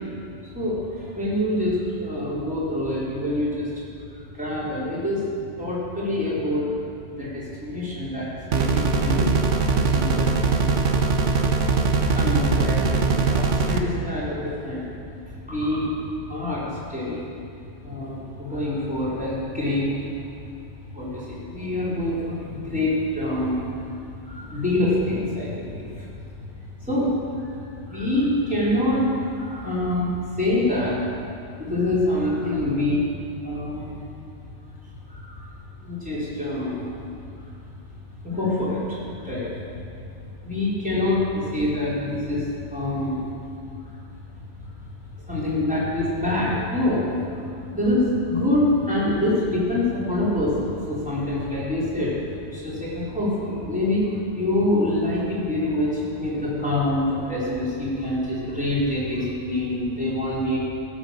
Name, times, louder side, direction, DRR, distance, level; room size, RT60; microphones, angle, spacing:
voice 1, 0.5-3.7 4.2-6.7 7.1-9.3 9.7-10.3 12.1-14.9 15.4-15.9 16.2-17.2 17.8-19.9 20.9-23.9 24.2-26.1 26.8-31.0 31.6-33.1 33.4-34.0 35.1-35.4 35.8-37.0 37.4-37.5 38.2-39.5 39.7-40.0 40.4-43.2 43.8-44.0 44.6-44.7 45.2-60.6, left 1 dB, 5° right, -8 dB, 4.2 m, -26 dB
sound 1, 8.5-13.8, right 4 dB, 90° right, 1.3 m, -21 dB
17.5 x 8.7 x 6.6 m, 2.5 s
omnidirectional pair, 1.2 m